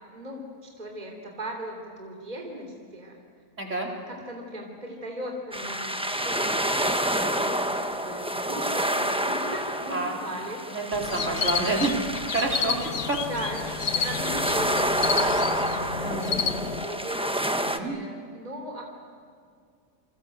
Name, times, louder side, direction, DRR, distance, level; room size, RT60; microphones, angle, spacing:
voice 1, 0.1-3.2 4.1-10.6 11.7-11.9 13.2-13.7 13.9-18.8, right 1 dB, 25° right, 2 dB, 3.6 m, -38 dB
voice 2, 3.6-3.9 9.9-10.2 10.7-11.9 12.3-12.8 13.1-13.2 16.0-16.4 17.6-18.0, right 3 dB, 50° right, -1 dB, 4.5 m, -28 dB
sound 1, 5.5-17.8, right 1 dB, 5° right, 1.0 m, -29 dB
sound 2, 10.9-16.8, left 7 dB, 60° left, 1.4 m, -31 dB
29.5 x 25.5 x 8.0 m, 2.2 s
omnidirectional pair, 1.7 m